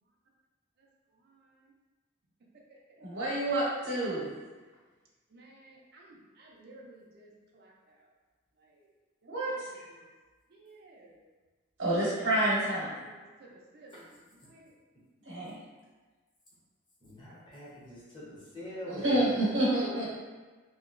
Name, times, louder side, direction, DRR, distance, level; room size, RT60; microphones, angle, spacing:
voice 1, 3.0-4.2 9.3-9.5 11.8-12.9 15.2-15.6 18.9-20.1, right 1 dB, 75° right, -8 dB, 0.9 m, -28 dB
voice 2, 5.3-7.9 8.6-8.9 9.2-10.1 10.5-11.2 13.0-14.7, right 2 dB, 55° right, -3 dB, 0.4 m, -56 dB
voice 3, 17.0-19.3, equal, 25° left, -7 dB, 0.8 m, -44 dB
2.8 x 2.7 x 2.5 m, 1.3 s
head